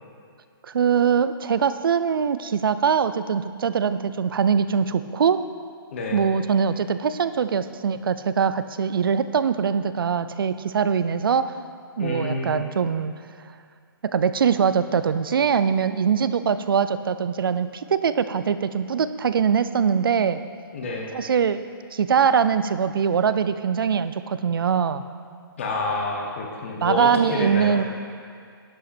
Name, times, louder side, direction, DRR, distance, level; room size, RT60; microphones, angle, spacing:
voice 1, 0.6-5.5 6.1-11.5 12.0-13.1 14.0-20.4 21.1-21.6 21.9-25.0 26.8-27.8, right 7 dB, 70° right, 13 dB, 0.4 m, -22 dB
voice 2, 5.9-6.2 12.0-12.6 20.7-21.1 25.6-27.8, left 2 dB, 30° left, 0 dB, 1.0 m, -28 dB
11.5 x 5.6 x 4.2 m, 2.2 s
hypercardioid pair, 180°, 12 cm